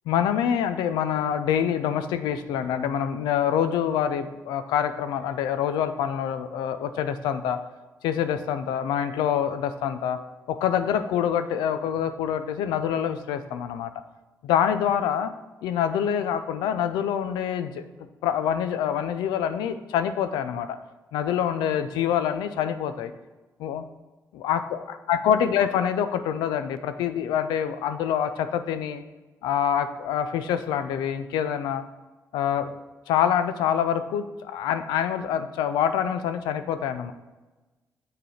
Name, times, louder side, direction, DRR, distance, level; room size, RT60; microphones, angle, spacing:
voice 1, 0.1-7.6 8.0-10.2 10.5-13.9 14.4-15.3 15.6-17.8 18.2-20.8 21.1-23.1 23.6-23.8 24.3-24.8 25.1-29.0 29.4-31.8 32.3-32.7 33.1-37.1, left 9 dB, 85° left, 10 dB, 0.4 m, -26 dB
6.7 x 3.3 x 5.6 m, 1.2 s
supercardioid pair, 45°, 7 cm